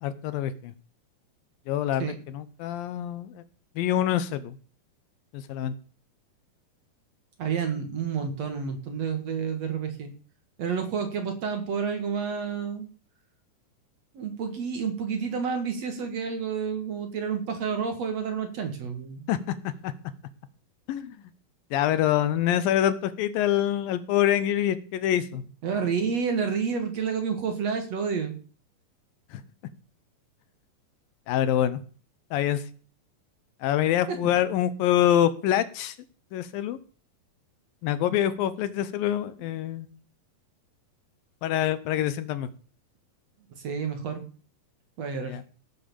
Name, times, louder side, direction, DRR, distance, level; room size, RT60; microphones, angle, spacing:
voice 1, 0.0-0.7 1.7-3.4 3.8-4.6 5.3-5.7 19.3-19.4 19.8-19.9 20.9-21.2 21.7-25.4 29.3-29.4 31.3-31.8 32.3-32.6 33.6-36.0 36.3-36.8 37.8-39.9 41.4-42.5 45.2-45.4, left 11 dB, 80° left, 14 dB, 2.5 m, -25 dB
voice 2, 7.4-10.1 10.6-12.9 14.1-19.3 25.6-28.3 34.1-34.2 43.6-44.2 45.0-45.4, right 6 dB, 50° right, 6 dB, 2.5 m, -29 dB
16.5 x 6.9 x 7.1 m, 0.42 s
omnidirectional pair, 4.3 m